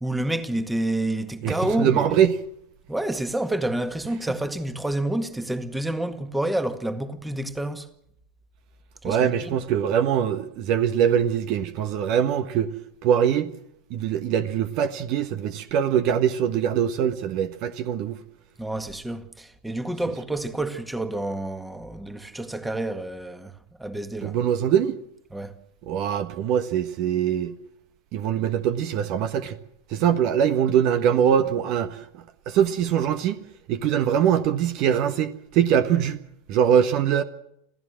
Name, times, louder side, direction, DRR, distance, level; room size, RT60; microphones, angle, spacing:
voice 1, 0.0-2.2 2.9-7.9 9.0-9.6 18.6-24.4 25.3-25.5, right 1 dB, 5° right, 1.9 m, -29 dB
voice 2, 1.4-2.3 9.0-12.7 13.0-13.5 13.9-18.2 24.2-25.0 25.9-27.5 28.1-29.6 29.9-32.0 32.5-33.4 33.7-36.2 36.5-37.2, right 9 dB, 50° right, 1.3 m, -22 dB
27.5 x 16.0 x 7.6 m
figure-of-eight pair, 85°, 0 cm